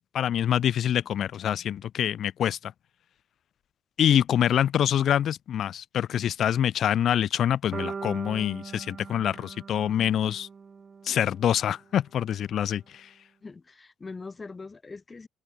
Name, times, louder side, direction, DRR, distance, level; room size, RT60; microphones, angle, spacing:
voice 1, 0.1-2.7 4.0-10.5 11.1-13.1, left 10 dB, 65° left, 0.3 m, -25 dB
sound 1, 7.7-11.8, right 5 dB, 40° right, 1.1 m, -41 dB
voice 2, 13.4-15.3, left 4 dB, 30° left, 2.0 m, -42 dB
cardioid pair, 90°, 0 cm